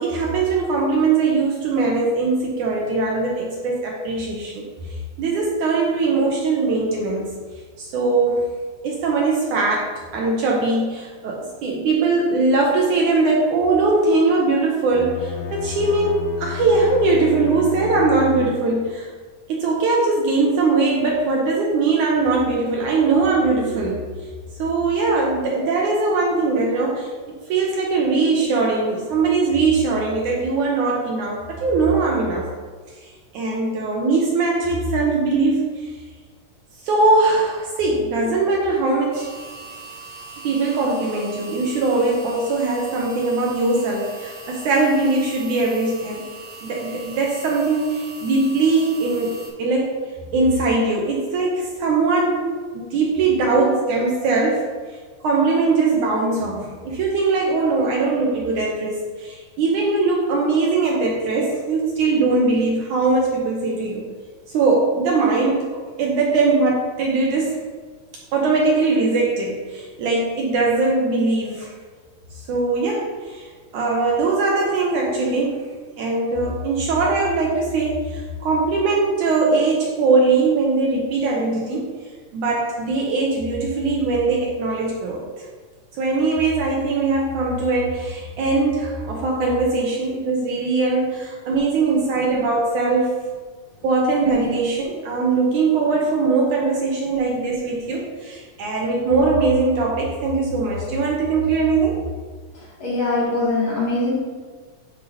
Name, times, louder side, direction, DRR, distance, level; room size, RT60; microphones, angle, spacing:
voice 1, 0.0-4.7 5.2-7.3 7.8-8.5 8.8-19.1 19.5-24.1 24.6-27.1 27.5-32.5 33.0-35.9 36.8-39.3 40.4-46.2 46.6-50.0 50.3-54.7 55.2-64.1 64.5-67.6 68.3-71.7 72.5-73.5 73.7-75.7 76.0-81.9 82.3-85.5 86.0-93.2 93.8-102.0, right 3 dB, 70° right, -2 dB, 2.1 m, -21 dB
Bowed string instrument, 14.9-18.9, left 9 dB, 85° left, 1.6 m, -31 dB
sound 1, 39.1-49.5, right 4 dB, 40° right, 2.1 m, -40 dB
voice 2, 102.5-104.1, left 2 dB, 50° left, -7 dB, 2.7 m, -22 dB
11.5 x 5.4 x 2.9 m, 1.5 s
omnidirectional pair, 4.1 m